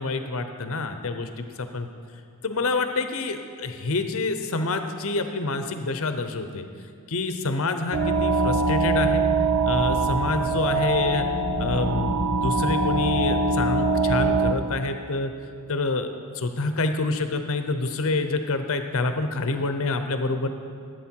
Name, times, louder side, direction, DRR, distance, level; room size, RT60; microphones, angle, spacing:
voice 1, 0.0-1.9 2.4-6.7 7.1-9.2 9.6-11.3 11.6-15.3 15.7-16.1 16.3-20.5, left 3 dB, 65° left, 8 dB, 0.8 m, -27 dB
sound 1, 7.9-14.5, right 3 dB, 75° right, 0.7 m, -23 dB
14.5 x 8.0 x 4.6 m, 2.4 s
head